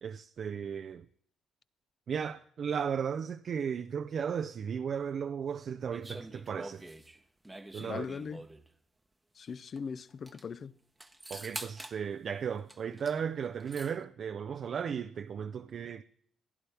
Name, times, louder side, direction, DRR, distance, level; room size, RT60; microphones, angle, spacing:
voice 1, 0.0-1.1 2.1-6.9 7.7-8.1 11.3-16.0, right 7 dB, 50° right, 0.4 m, -35 dB
sound 1, 5.9-8.7 9.8-9.9 10.1-10.4 11.0-12.0 12.7-13.2 13.4-13.9, right 1 dB, 10° right, 0.9 m, -46 dB
voice 2, 7.8-8.4 9.4-10.7, left 6 dB, 45° left, 0.5 m, -39 dB
16.0 x 10.5 x 3.4 m
cardioid pair, 100°, 0 cm